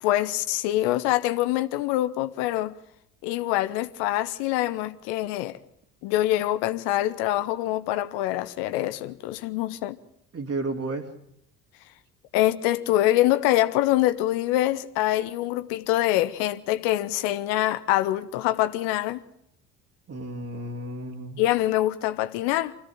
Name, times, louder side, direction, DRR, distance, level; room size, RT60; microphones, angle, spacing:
voice 1, 0.0-2.8 3.2-5.6 6.0-10.0 12.3-19.2 21.4-22.7, left 15 dB, 60° left, 1.1 m, -25 dB
voice 2, 10.3-11.1 20.1-21.4, right 2 dB, 30° right, 3.0 m, -32 dB
25.0 x 16.5 x 8.8 m
figure-of-eight pair, 55°, 45 cm